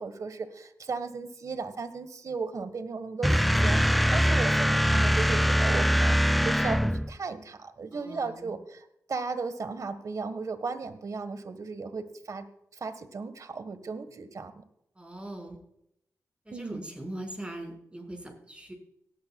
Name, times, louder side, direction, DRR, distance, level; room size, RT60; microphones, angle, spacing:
voice 1, 0.0-6.2 6.4-12.5 12.7-14.6 16.5-16.8, right 4 dB, 65° right, 11 dB, 1.5 m, -36 dB
sound 1, 3.2-7.2, equal, ahead, 0.3 m, -23 dB
voice 2, 7.9-8.5 15.0-15.6 16.5-18.7, right 1 dB, 20° right, 2 dB, 5.5 m, -41 dB
18.0 x 12.0 x 2.4 m, 0.74 s
cardioid pair, 65°, 6 cm